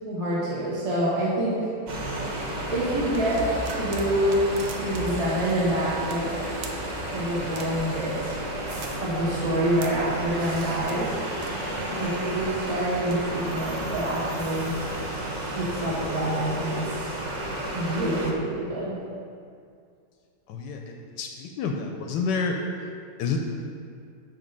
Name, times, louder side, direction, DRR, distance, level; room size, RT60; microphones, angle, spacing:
voice 1, 0.0-1.7 2.7-3.4 3.8-6.4 7.1-8.4 9.0-11.2 11.9-14.7 15.5-17.2 17.7-18.9, right 1 dB, 25° right, -8 dB, 1.3 m, -27 dB
sound 1, 1.9-18.3, right 1 dB, 60° right, 0.4 m, -32 dB
sound 2, 3.1-5.2 5.5-5.6 6.1-6.8 7.6-8.0 8.4-10.1 10.5-11.0 11.4-11.9 12.9-13.2, right 5 dB, 75° right, 1.3 m, -43 dB
voice 2, 11.7-12.0 20.5-22.6 23.2-23.4, left 5 dB, 80° left, 3 dB, 1.2 m, -29 dB
6.1 x 5.1 x 5.5 m, 2.3 s
omnidirectional pair, 1.9 m